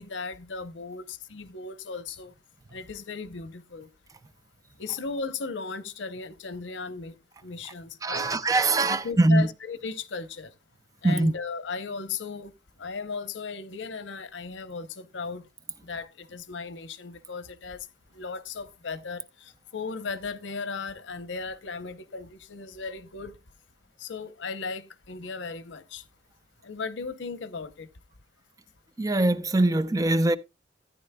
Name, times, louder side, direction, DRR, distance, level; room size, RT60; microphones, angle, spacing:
voice 1, 0.0-2.3 2.7-3.9 4.8-7.2 7.4-8.3 8.9-10.5 11.0-12.5 12.8-15.5 15.8-17.9 18.1-23.4 24.0-26.0 26.6-27.9, left 4 dB, 90° left, 0.8 m, -36 dB
voice 2, 8.0-9.5 11.0-11.3 29.0-30.4, right 2 dB, 20° right, 0.4 m, -22 dB
14.0 x 9.4 x 2.2 m
head